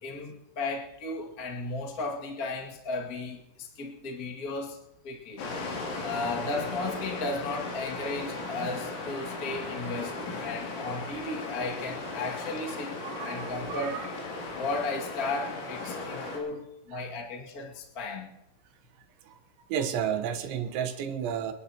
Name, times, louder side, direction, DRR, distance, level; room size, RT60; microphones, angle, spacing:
voice 1, 0.0-4.8 5.0-5.4 6.0-13.0 13.2-14.0 14.5-18.3, left 3 dB, 45° left, -1 dB, 1.1 m, -35 dB
sound 1, 5.4-16.4, left 3 dB, 85° left, 5.2 m, -37 dB
voice 2, 12.7-14.1 15.9-16.4 16.9-17.0 19.3-19.4 19.7-21.5, right 8 dB, 80° right, 6 dB, 3.4 m, -33 dB
28.5 x 11.0 x 2.9 m, 0.90 s
omnidirectional pair, 5.3 m